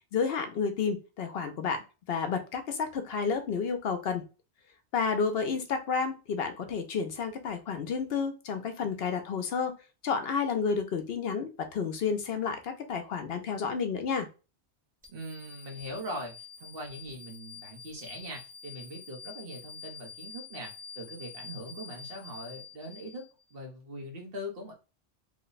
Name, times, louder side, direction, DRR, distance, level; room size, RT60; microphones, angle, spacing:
voice 1, 0.1-1.8 2.1-4.2 4.9-9.7 10.0-14.3, left 5 dB, 65° left, 7 dB, 0.8 m, -31 dB
sound 1, 15.0-23.5, left 6 dB, 10° right, 0.4 m, -47 dB
voice 2, 15.1-16.3 16.6-24.7, equal, 55° right, 1 dB, 1.2 m, -41 dB
3.1 x 2.2 x 3.9 m, 0.31 s
omnidirectional pair, 1.2 m